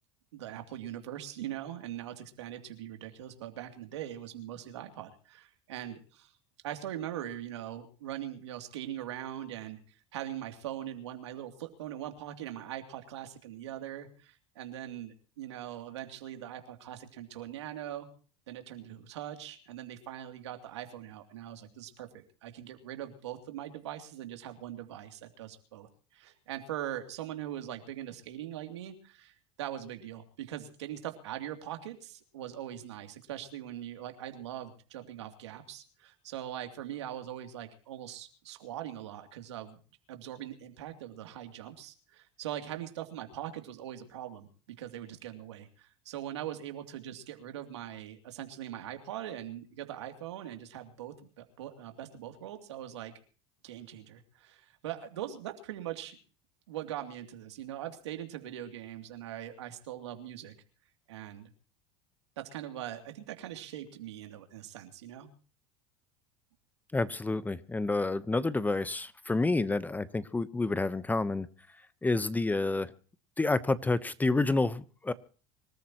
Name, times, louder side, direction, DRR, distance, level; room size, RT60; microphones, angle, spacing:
voice 1, 0.3-6.3 6.6-9.8 10.1-18.1 18.5-39.8 40.1-53.1 53.6-56.2 56.7-60.5 61.1-61.5 62.4-65.3, right 11 dB, 90° right, 5 dB, 2.8 m, -41 dB
voice 2, 66.9-71.5 72.0-72.9 73.4-75.1, left 3 dB, 10° left, 15 dB, 1.0 m, -29 dB
25.5 x 14.0 x 3.0 m, 0.39 s
supercardioid pair, 100°, 14 cm